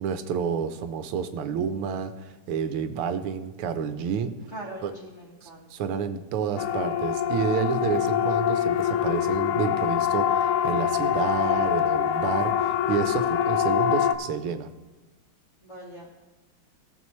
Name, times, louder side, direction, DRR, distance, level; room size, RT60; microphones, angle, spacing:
voice 1, 0.0-4.3 4.8-4.9 5.4-14.7, right 7 dB, 85° right, 10 dB, 1.7 m, -29 dB
voice 2, 4.5-5.9 15.6-16.2, right 1 dB, 35° left, -6 dB, 2.2 m, -42 dB
Siren, 6.6-14.2, left 9 dB, 85° left, 1.5 m, -24 dB
17.0 x 7.1 x 3.1 m, 1.2 s
omnidirectional pair, 2.3 m